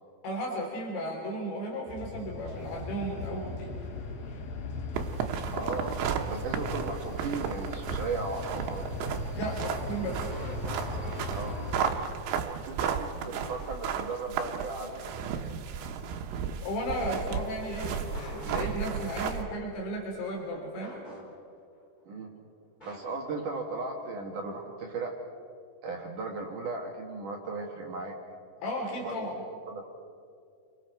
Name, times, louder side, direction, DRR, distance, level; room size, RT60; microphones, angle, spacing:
voice 1, 0.2-3.7 9.3-10.3 16.6-21.0 28.6-29.4, equal, 85° left, -1 dB, 5.3 m, -34 dB
sound 1, 1.9-11.8, left 3 dB, 65° left, 3.3 m, -39 dB
sound 2, 5.0-19.4, right 7 dB, 85° right, 3.4 m, -34 dB
voice 2, 5.5-5.9 6.3-8.9 11.3-11.6 12.7-15.3 22.1-22.4 22.8-25.1 25.8-28.1 29.0-29.1 29.7-29.8, right 3 dB, 60° right, 0 dB, 2.6 m, -36 dB
sound 3, 5.8-6.7 7.1-7.2 9.7-12.9 13.3-14.1 17.8-19.3 20.8-21.6 22.8-23.1, equal, 10° left, 3.7 m, -46 dB
30.0 x 24.0 x 4.6 m, 2.4 s
omnidirectional pair, 5.0 m